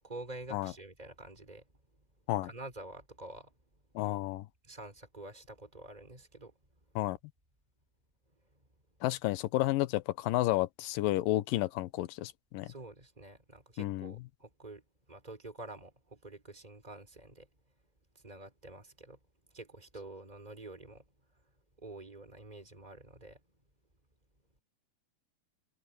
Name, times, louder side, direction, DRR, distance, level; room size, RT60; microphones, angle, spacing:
voice 1, 0.0-1.7 2.2-3.6 4.6-6.6 8.3-8.6 12.6-17.5 18.1-19.2 19.5-21.0 21.8-23.4, right 2 dB, 10° right, 5.0 m, -48 dB
voice 2, 4.0-4.5 7.0-7.2 9.0-12.7 13.8-14.1, left 17 dB, 80° left, 2.3 m, -31 dB
omnidirectional pair, 4.2 m